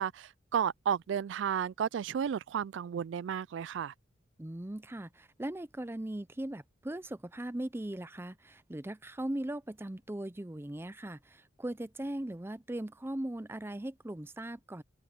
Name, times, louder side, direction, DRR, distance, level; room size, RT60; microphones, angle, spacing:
voice 1, 0.0-3.9, right 8 dB, 70° right, 0.3 m, -33 dB
voice 2, 4.4-14.8, right 1 dB, 10° right, 0.5 m, -39 dB
head